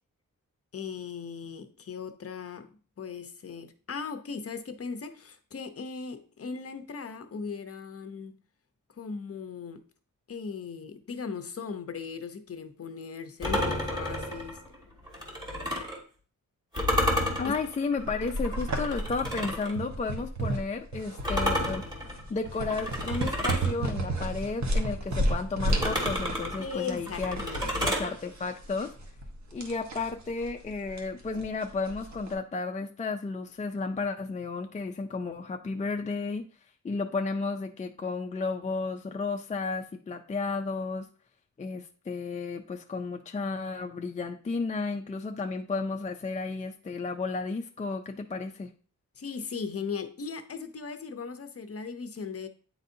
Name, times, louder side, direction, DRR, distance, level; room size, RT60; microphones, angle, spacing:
voice 1, 0.7-2.7 3.0-8.4 8.9-9.8 10.3-14.6 17.4-17.5 26.6-27.7 49.2-52.5, left 5 dB, 45° left, 9 dB, 0.7 m, -38 dB
sound 1, 13.4-16.0 16.7-19.7 21.2-23.7 25.7-28.1, left 1 dB, 15° right, 1.7 m, -31 dB
voice 2, 17.4-21.8 22.3-27.5 27.8-28.9 29.5-36.5 36.8-41.1 41.6-48.7, left 4 dB, 25° left, 4 dB, 0.4 m, -33 dB
sound 2, 18.0-32.3, right 1 dB, 60° right, 1.1 m, -33 dB
9.2 x 4.0 x 2.6 m, 0.40 s
wide cardioid pair, 120°, 32 cm